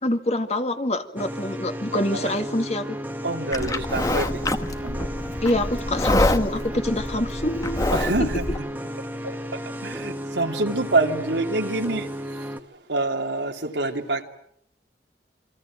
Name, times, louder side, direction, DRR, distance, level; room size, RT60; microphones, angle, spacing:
voice 1, 0.0-2.9 5.4-8.3, left 1 dB, 40° left, 2.0 m, -26 dB
sound 1, 1.2-12.6, equal, 10° right, 1.5 m, -34 dB
voice 2, 1.9-2.3 3.2-4.3 4.8-5.1 7.9-8.4 9.2-12.1 12.9-14.2, right 2 dB, 90° right, 3.1 m, -26 dB
Livestock farm animals working animals, 3.5-8.6, left 1 dB, 20° left, 1.1 m, -26 dB
28.5 x 25.0 x 7.6 m
head